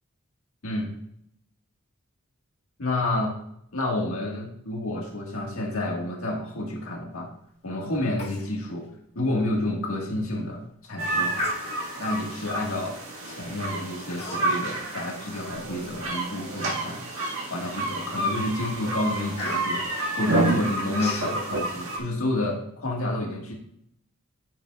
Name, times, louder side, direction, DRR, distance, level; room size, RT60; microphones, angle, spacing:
voice 1, 2.8-3.3 3.7-7.3 7.6-8.9 9.1-11.4 12.0-13.0 13.3-17.0 17.5-19.8 20.2-23.5, left 1 dB, 80° left, 0 dB, 1.7 m, -29 dB
Human voice, 8.2-8.5 8.8-8.9 9.4-9.6 10.1-10.4 11.3-12.1 12.8-13.1 14.1-14.7 15.1-16.1 16.6-16.7 17.2-17.7 18.2-18.4 18.7-21.3, left 2 dB, 50° left, 2.0 m, -37 dB
sound 1, 11.0-22.0, right 2 dB, 70° right, 1.8 m, -29 dB
9.2 x 7.2 x 2.4 m, 0.73 s
head